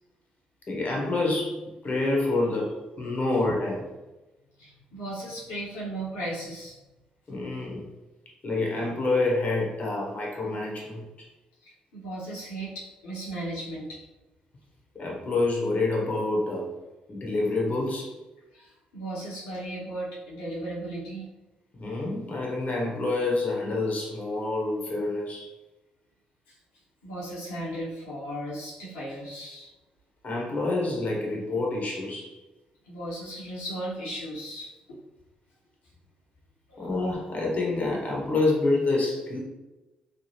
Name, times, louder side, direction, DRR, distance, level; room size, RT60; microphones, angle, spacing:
voice 1, 0.7-3.9 7.3-7.9 8.4-11.3 14.9-16.7 17.1-18.1 21.7-25.5 30.2-32.3 36.8-39.4, left 2 dB, 40° left, -2 dB, 0.9 m, -27 dB
voice 2, 4.6-6.8 11.6-14.0 18.5-21.3 26.5-26.6 27.0-29.7 32.8-34.7 36.7-36.9, right 1 dB, 85° left, -8 dB, 1.1 m, -36 dB
3.3 x 2.3 x 2.8 m, 1.1 s
hypercardioid pair, 45°, 4 cm